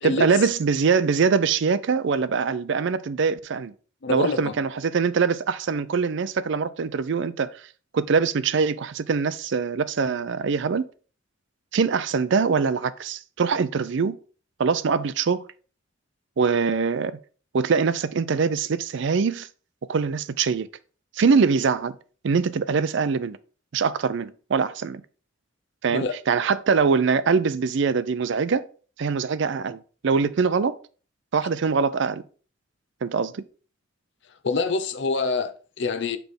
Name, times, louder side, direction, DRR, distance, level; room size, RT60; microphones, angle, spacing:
voice 1, 0.0-3.7 4.1-7.5 7.9-10.9 11.7-14.2 14.6-15.4 16.4-17.2 17.5-19.5 19.9-20.7 21.2-22.0 22.2-23.4 23.7-25.0 25.8-28.7 29.0-30.8 31.3-32.2 33.0-33.4, right 5 dB, 65° right, 0.4 m, -23 dB
voice 2, 4.0-4.5 25.9-26.1 34.4-36.2, left 4 dB, 60° left, 0.6 m, -26 dB
6.1 x 3.4 x 5.2 m
head